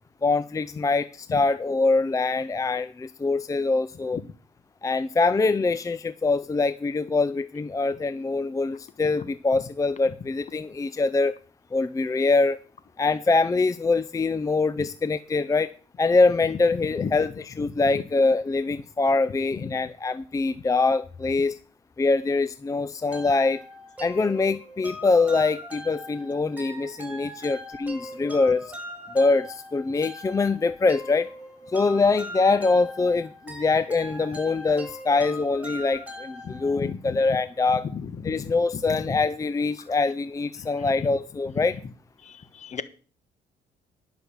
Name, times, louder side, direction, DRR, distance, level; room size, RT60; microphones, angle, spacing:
voice 1, 0.2-4.2 4.8-11.3 11.7-12.6 13.0-15.7 16.0-21.6 22.0-23.6 24.0-28.7 29.1-31.3 31.7-37.9 38.2-41.8, left 3 dB, 20° left, 14 dB, 0.5 m, -24 dB
sound 1, 23.1-36.9, equal, 10° right, 4.4 m, -41 dB
voice 2, 36.4-37.2 37.9-38.5 39.1-39.2 42.3-42.8, left 6 dB, 45° left, 13 dB, 1.2 m, -34 dB
11.0 x 6.0 x 7.0 m, 0.39 s
cardioid pair, 85°, 17 cm